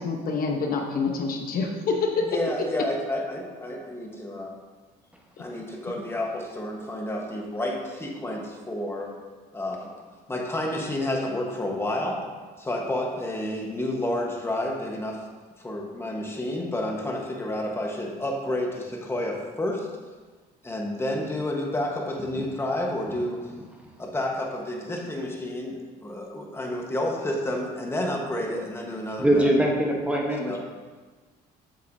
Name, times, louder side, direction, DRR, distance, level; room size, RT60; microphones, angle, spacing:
voice 1, 0.0-2.4, left 4 dB, 60° left, 3 dB, 0.9 m, -26 dB
voice 2, 2.2-4.5 5.4-9.1 9.5-10.0 10.3-12.2 12.6-15.2 15.6-19.9 20.6-23.5 24.0-29.5 30.5-30.6, left 1 dB, 15° left, 0 dB, 1.2 m, -30 dB
voice 3, 29.2-30.6, right 1 dB, 5° right, -1 dB, 1.1 m, -22 dB
8.1 x 6.5 x 2.7 m, 1.4 s
cardioid pair, 110°, 17 cm